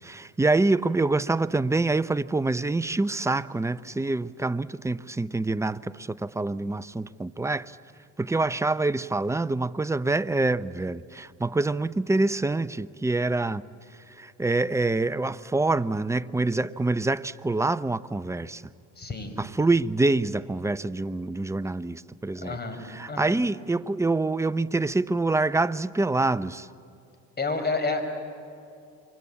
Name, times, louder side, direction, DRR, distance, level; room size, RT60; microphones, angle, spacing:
voice 1, 0.0-7.8 8.2-13.6 14.1-18.7 19.4-22.6 22.9-26.7, right 2 dB, 10° right, 0.6 m, -26 dB
voice 2, 19.0-19.4 22.4-22.8 23.1-23.3 27.4-28.0, left 3 dB, 30° left, 4.7 m, -29 dB
27.5 x 24.0 x 8.5 m
supercardioid pair, 80°, 34 cm